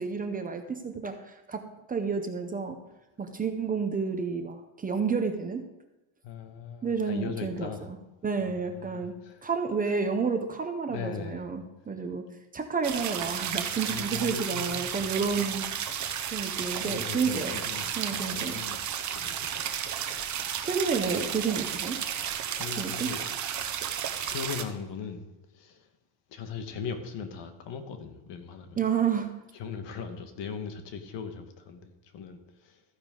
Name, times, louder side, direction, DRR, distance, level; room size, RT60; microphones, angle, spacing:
voice 1, 0.0-1.6 1.9-2.8 3.2-5.7 6.8-8.0 8.2-9.1 9.4-12.3 12.5-15.6 16.3-17.5 18.0-18.6 20.6-22.0 22.8-23.1 28.8-29.3, right 5 dB, 20° right, 5 dB, 0.6 m, -30 dB
voice 2, 6.2-7.9 8.4-9.5 9.8-10.0 10.9-11.4 13.9-15.6 16.0-16.2 16.8-19.8 20.3-20.7 22.5-23.4 23.7-23.9 24.2-25.3 25.5-25.9 26.3-28.8 29.5-32.8, left 6 dB, 65° left, 7 dB, 1.6 m, -40 dB
sound 1, 12.8-24.6, right 9 dB, 40° right, 0.9 m, -33 dB
14.0 x 10.0 x 3.8 m, 1.0 s
cardioid pair, 175°, 45 cm